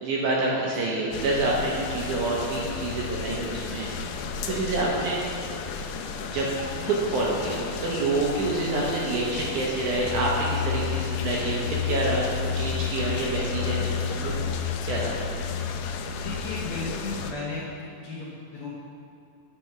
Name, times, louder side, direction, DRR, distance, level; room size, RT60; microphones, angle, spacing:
voice 1, 0.0-3.9 4.5-5.2 6.3-6.5 6.8-12.2 12.6-14.4 14.8-15.1, right 2 dB, 70° right, -4 dB, 2.0 m, -27 dB
sound 1, 1.1-17.3, left 6 dB, 80° left, 2.0 m, -31 dB
voice 2, 16.2-17.6 18.0-18.3 18.5-18.7, left 3 dB, 65° left, -7 dB, 1.9 m, -34 dB
9.1 x 4.2 x 5.8 m, 2.7 s
omnidirectional pair, 4.2 m